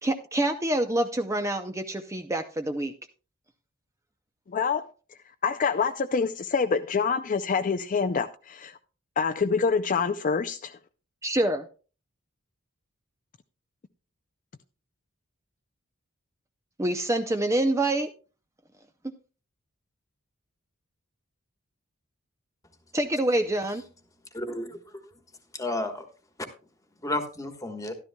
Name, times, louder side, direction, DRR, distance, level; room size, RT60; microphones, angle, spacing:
voice 1, 0.0-2.9 11.2-11.7 16.8-18.1 22.9-23.8, right 1 dB, 15° right, 0.5 m, -26 dB
voice 2, 4.5-4.9 5.4-8.8 9.2-10.8, left 5 dB, 35° left, 0.4 m, -26 dB
voice 3, 24.3-25.0 25.5-26.0 27.0-27.9, left 1 dB, 15° left, 1.3 m, -32 dB
13.0 x 12.0 x 2.2 m
head